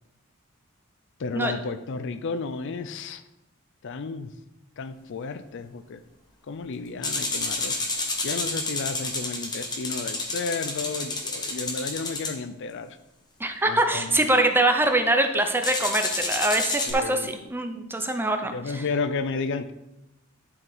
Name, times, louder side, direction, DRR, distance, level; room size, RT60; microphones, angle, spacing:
voice 1, 1.2-3.2 3.8-4.3 4.8-6.0 6.5-13.0 13.6-14.2 16.9-17.3 18.5-19.7, left 4 dB, 55° left, 11 dB, 0.5 m, -32 dB
sound 1, 7.0-12.3 15.6-16.9, left 2 dB, 20° left, 1.1 m, -30 dB
voice 2, 13.4-18.8, right 1 dB, 10° right, 6 dB, 0.6 m, -24 dB
11.0 x 4.7 x 3.9 m, 0.92 s
head